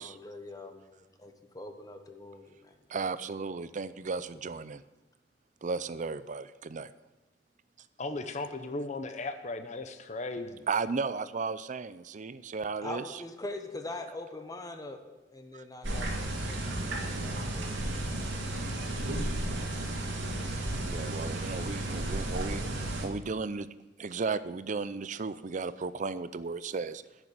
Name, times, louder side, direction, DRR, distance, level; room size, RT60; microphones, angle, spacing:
voice 1, 0.0-3.0 12.8-15.0 15.3-18.0 19.0-19.3 22.1-22.3 22.6-22.7, left 2 dB, 20° left, 6 dB, 1.1 m, -43 dB
voice 2, 2.9-4.8 5.6-6.9 10.7-13.2 15.5-15.6 20.8-23.7 24.0-27.0, right 4 dB, 45° right, 15 dB, 0.5 m, -35 dB
voice 3, 8.0-10.6, left 2 dB, 40° left, 8 dB, 0.7 m, -36 dB
sound 1, 15.8-23.1, right 1 dB, 90° right, 2.3 m, -33 dB
10.5 x 6.7 x 9.0 m, 1.1 s
head